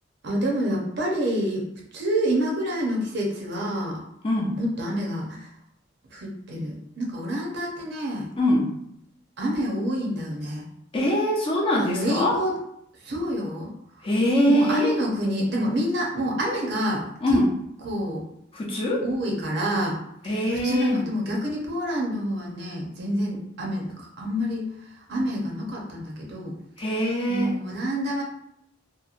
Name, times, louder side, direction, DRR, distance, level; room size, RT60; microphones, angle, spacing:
voice 1, 0.2-1.7 1.9-4.0 4.6-5.5 6.1-8.3 9.4-10.6 11.8-12.6 13.0-13.7 14.4-17.0 17.3-17.4 17.8-18.2 19.0-19.9 20.2-20.4 20.6-24.7 25.1-26.9 27.3-28.2, equal, 60° right, -2 dB, 0.7 m, -27 dB
voice 2, 4.2-4.6 8.4-8.7 10.9-12.4 14.0-15.0 17.2-17.5 18.5-19.1 20.2-21.0 26.8-27.6, equal, 30° left, -2 dB, 0.5 m, -23 dB
2.9 x 2.1 x 2.4 m, 0.76 s
head